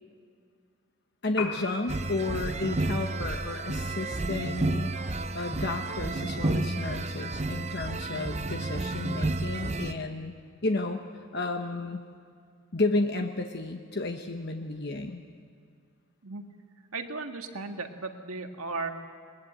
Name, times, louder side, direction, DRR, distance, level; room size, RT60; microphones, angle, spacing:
voice 1, 1.2-4.9 5.3-10.3 10.6-11.0 11.3-12.0 12.7-15.2, left 2 dB, 50° left, 4 dB, 1.1 m, -32 dB
Piano, 1.3-9.3, left 5 dB, 80° left, 3.4 m, -45 dB
sound 1, 1.9-9.9, right 2 dB, 30° right, 0.7 m, -31 dB
voice 2, 16.9-18.9, right 3 dB, 80° right, 5 dB, 1.8 m, -35 dB
21.0 x 21.0 x 8.1 m, 2.2 s
head